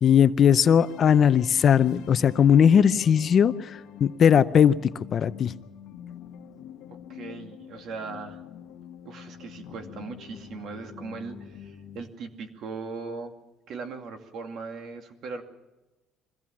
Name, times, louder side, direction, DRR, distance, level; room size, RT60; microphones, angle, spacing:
voice 1, 0.0-4.7 5.1-5.5, left 8 dB, 40° left, 13 dB, 0.6 m, -19 dB
sound 1, 0.8-12.1, left 10 dB, 75° left, 1.7 m, -45 dB
voice 2, 6.9-8.4 9.0-13.3 13.7-15.4, right 4 dB, 60° right, 5 dB, 2.4 m, -39 dB
23.5 x 15.5 x 7.3 m, 1.1 s
cardioid pair, 140°, 0 cm